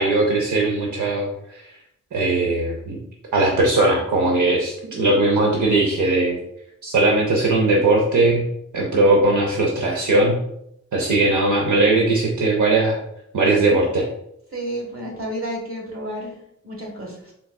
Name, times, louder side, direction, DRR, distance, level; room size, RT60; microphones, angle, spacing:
voice 1, 0.0-1.6 2.1-3.0 3.3-6.4 6.8-8.5 8.7-10.4 10.9-13.0 13.3-14.1, right 2 dB, 75° right, -1 dB, 0.7 m, -19 dB
voice 2, 14.5-16.3 16.6-17.3, equal, 45° right, -2 dB, 1.3 m, -31 dB
3.8 x 3.5 x 2.2 m, 0.75 s
wide cardioid pair, 105°, 30 cm